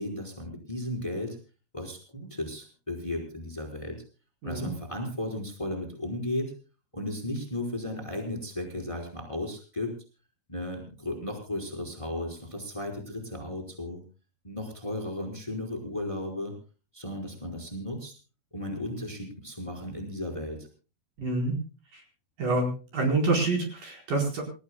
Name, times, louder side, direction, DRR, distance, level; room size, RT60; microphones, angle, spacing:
voice 1, 0.0-1.4 1.7-4.0 4.4-6.5 6.9-9.9 10.5-14.0 14.4-16.5 16.9-18.1 18.5-20.7, left 1 dB, 5° left, 3 dB, 4.3 m, -35 dB
voice 2, 21.2-21.5 21.9-22.0 22.4-24.4, right 2 dB, 55° right, 2 dB, 6.2 m, -27 dB
28.0 x 15.5 x 2.3 m, 0.35 s
omnidirectional pair, 4.7 m